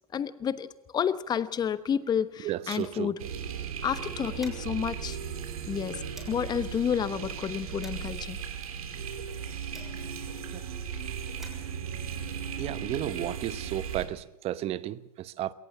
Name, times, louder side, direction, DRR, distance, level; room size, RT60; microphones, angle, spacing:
voice 1, 0.1-0.7 0.9-3.2 3.8-5.2 5.7-6.0 6.3-8.4, left 8 dB, 20° left, 15 dB, 1.1 m, -30 dB
sound 1, 1.4-3.2 3.5-3.6 4.0-6.5 7.1-10.3 11.0-13.3, left 1 dB, ahead, 6.7 m, -54 dB
voice 2, 2.4-3.1 10.5-10.6 12.6-15.5, right 13 dB, 30° right, 17 dB, 0.9 m, -33 dB
sound 2, 3.2-14.1, right 7 dB, 70° right, 3.2 m, -36 dB
21.5 x 18.0 x 7.3 m, 0.89 s
hypercardioid pair, 105°, 19 cm